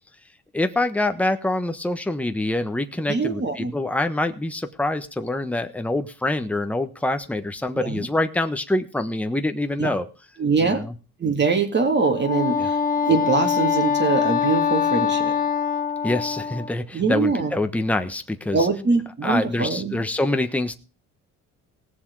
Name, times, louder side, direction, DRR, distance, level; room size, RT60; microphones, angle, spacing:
voice 1, 0.5-10.1 10.6-10.9 12.6-12.7 16.0-18.6 19.2-20.7, left 2 dB, 5° left, 7 dB, 1.2 m, -25 dB
voice 2, 3.1-3.7 7.7-8.1 9.8-9.9 10.4-10.8 11.2-15.3 16.9-17.5 18.5-20.0, right 4 dB, 35° right, 5 dB, 3.1 m, -23 dB
Wind instrument woodwind instrument, 12.1-16.8, left 7 dB, 25° left, 1.6 m, -23 dB
18.0 x 7.2 x 4.8 m, 0.35 s
cardioid pair, 105°, 33 cm